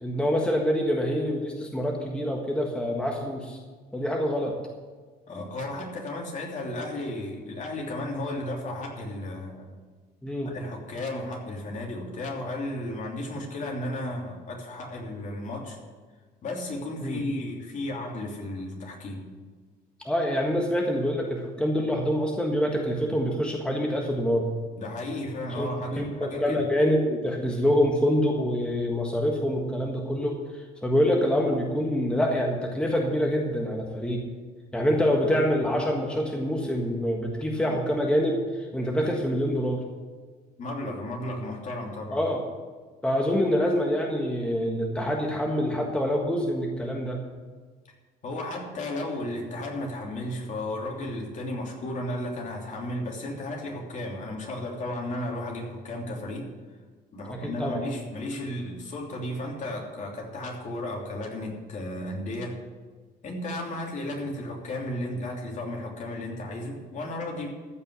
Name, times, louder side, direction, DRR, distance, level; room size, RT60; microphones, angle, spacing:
voice 1, 0.0-3.6 3.9-4.5 10.2-10.5 17.0-17.2 20.0-24.5 25.6-34.2 34.7-38.4 38.7-39.8 42.1-42.4 43.0-47.2 57.3-57.8, equal, 5° left, 0 dB, 1.5 m, -26 dB
voice 2, 5.3-9.7 10.4-15.8 16.4-19.3 24.7-26.6 40.6-42.2 48.2-56.5 57.1-62.6 63.2-67.5, left 1 dB, 45° left, -1 dB, 3.0 m, -34 dB
14.5 x 5.6 x 8.4 m, 1.4 s
cardioid pair, 110°, 17 cm